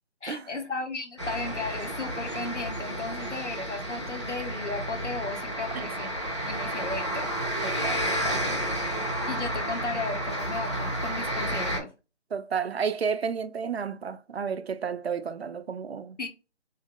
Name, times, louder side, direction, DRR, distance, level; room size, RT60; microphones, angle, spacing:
voice 1, 0.2-7.3 9.3-11.9 16.2-16.3, left 3 dB, 85° left, 1.1 m, -35 dB
sound 1, 1.2-11.8, right 1 dB, 25° left, 0.5 m, -31 dB
voice 2, 7.6-8.4 12.3-16.2, right 6 dB, 60° right, 0.5 m, -32 dB
3.2 x 2.2 x 3.5 m
figure-of-eight pair, 165°, 35 cm